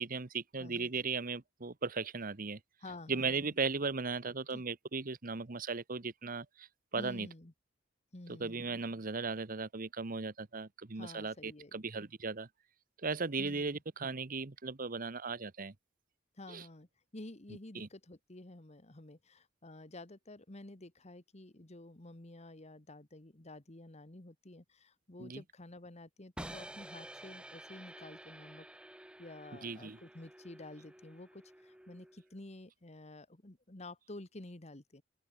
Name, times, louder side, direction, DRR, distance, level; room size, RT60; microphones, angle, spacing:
voice 1, 0.0-2.6 3.1-7.3 8.4-12.5 13.0-15.7 16.5-16.6 17.7-17.9 25.2-25.4 29.6-30.0, right 4 dB, 45° right, 1.0 m, -37 dB
voice 2, 0.6-0.9 2.8-3.5 4.5-4.6 7.0-7.5 8.1-8.7 11.0-11.8 13.4-13.8 16.4-16.9 17.1-28.6 29.2-35.0, left 2 dB, 35° left, 1.6 m, -50 dB
sound 1, 26.4-32.3, right 1 dB, 5° right, 0.7 m, -51 dB
open air
head